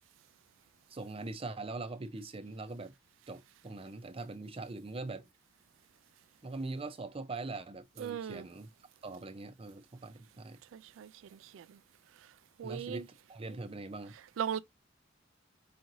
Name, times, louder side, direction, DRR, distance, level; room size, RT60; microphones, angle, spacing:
voice 1, 0.9-2.9 3.3-5.3 6.4-8.7 9.0-10.6 12.6-14.2, right 3 dB, 30° right, 0.6 m, -42 dB
voice 2, 8.0-8.4 10.7-11.1 11.5-11.6 12.6-13.0 14.4-14.6, right 8 dB, 85° right, 0.3 m, -37 dB
4.9 x 3.0 x 2.6 m
head